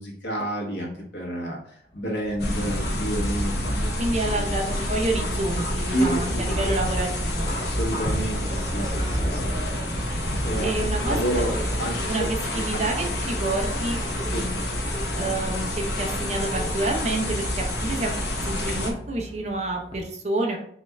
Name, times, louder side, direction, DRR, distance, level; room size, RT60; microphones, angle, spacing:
voice 1, 0.0-3.9 4.4-4.5 5.9-6.4 7.6-9.5 10.4-11.5 11.8-12.8 14.3-14.5, right 1 dB, 85° left, -2 dB, 1.2 m, -30 dB
sound 1, 1.9-20.0, equal, 35° left, 0.7 m, -34 dB
sound 2, 2.4-18.9, left 1 dB, 70° left, 0.9 m, -28 dB
voice 2, 4.0-7.5 10.6-11.6 12.1-14.0 14.3-14.7 15.1-18.1 18.4-20.6, right 2 dB, 40° right, 1 dB, 0.7 m, -28 dB
4.2 x 2.5 x 3.3 m, 0.65 s
head